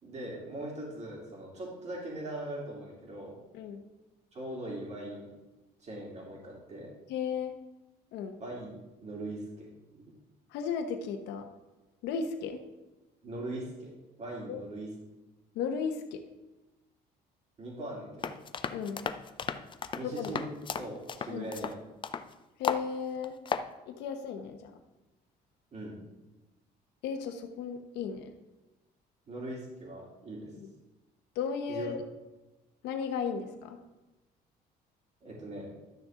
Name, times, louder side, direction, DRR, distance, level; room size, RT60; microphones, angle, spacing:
voice 1, 0.0-3.4 4.3-5.3 5.8-6.9 8.4-9.7 9.9-10.0 13.2-13.9 14.2-14.9 17.6-18.4 19.9-20.4 20.8-21.7 25.7-26.0 29.3-30.5 31.7-31.9 35.2-35.7, right 1 dB, 40° right, -3 dB, 3.0 m, -40 dB
voice 2, 7.1-7.5 8.1-8.3 10.5-11.5 12.0-12.6 14.5-14.6 15.5-16.2 18.7-19.0 20.0-20.3 21.3-21.5 22.6-23.3 23.9-24.7 27.0-28.3 31.3-32.0 32.8-33.8, left 6 dB, 90° left, 5 dB, 0.9 m, -35 dB
sound 1, 18.2-22.3 22.6-22.9 23.2-23.7, left 6 dB, 30° left, 0.5 m, -35 dB
12.0 x 6.3 x 3.7 m, 1.0 s
cardioid pair, 110°, 17 cm